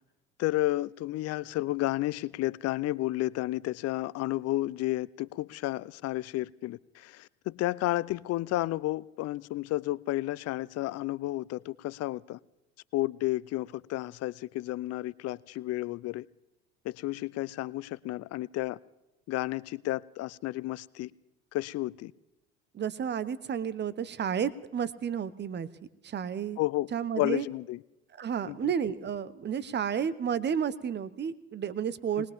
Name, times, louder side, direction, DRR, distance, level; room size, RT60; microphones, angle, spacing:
voice 1, 0.4-12.4 12.9-16.3 16.8-18.8 19.3-21.1 21.5-22.1 26.6-26.9 27.2-27.8 28.5-28.6 32.2-32.3, left 17 dB, 50° left, 20 dB, 0.5 m, -32 dB
voice 2, 22.7-25.7 26.0-26.6 26.9-27.5 28.2-32.3, right 8 dB, 35° right, 17 dB, 0.9 m, -31 dB
20.5 x 19.5 x 3.6 m, 0.97 s
hypercardioid pair, 75°, 32 cm